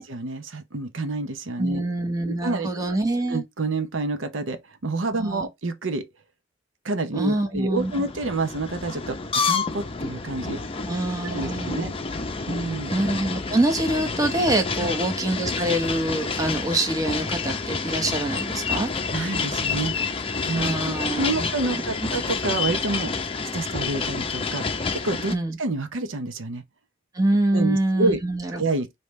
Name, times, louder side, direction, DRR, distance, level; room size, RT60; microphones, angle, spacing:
voice 1, 0.0-1.8 2.2-2.7 3.3-6.0 6.8-10.6 11.2-11.9 12.5-13.0 14.8-14.9 19.1-19.9 20.5-23.1 23.5-26.6 27.5-28.2 28.5-29.0, right 2 dB, 80° right, 0.8 m, -28 dB
voice 2, 1.6-3.4 5.1-5.5 7.1-7.9 10.9-11.9 12.9-18.9 20.5-21.8 25.3-25.6 27.1-28.6, right 1 dB, 20° right, 1.1 m, -25 dB
sound 1, 7.8-25.4, left 4 dB, 30° left, 0.6 m, -29 dB
5.1 x 2.8 x 3.1 m
head